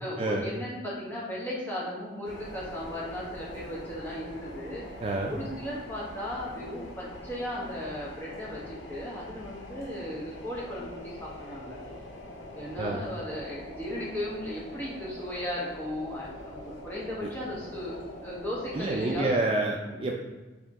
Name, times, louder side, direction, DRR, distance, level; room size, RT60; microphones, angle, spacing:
voice 1, 0.0-4.8 5.2-11.8 12.5-19.3 19.8-20.0, left 1 dB, 10° left, -6 dB, 1.1 m, -36 dB
sound 1, 2.2-19.3, left 1 dB, 90° left, 0.6 m, -44 dB
voice 2, 5.0-5.3 12.8-13.0 17.2-17.3 18.7-20.1, right 2 dB, 30° right, 0 dB, 0.3 m, -28 dB
4.4 x 2.9 x 3.5 m, 1.2 s
head